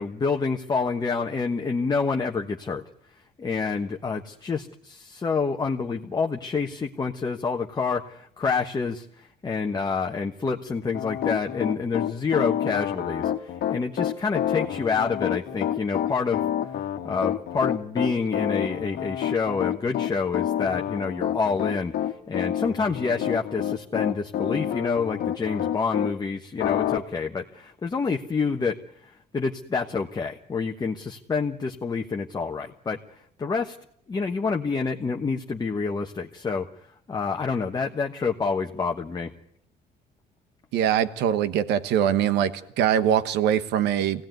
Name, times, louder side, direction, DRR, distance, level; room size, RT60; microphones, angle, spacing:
voice 1, 0.0-2.8 3.4-9.0 9.4-16.4 17.0-28.7 29.0-33.0 33.4-33.8 34.1-36.7 37.1-39.3, left 4 dB, 25° left, 2 dB, 1.3 m, -27 dB
Piano, 10.9-26.1 26.6-27.0, left 11 dB, 70° left, 1.5 m, -28 dB
voice 2, 40.7-42.5 42.8-44.3, right 9 dB, 85° right, 13 dB, 1.3 m, -22 dB
23.5 x 17.5 x 9.3 m, 0.71 s
cardioid pair, 110°, 17 cm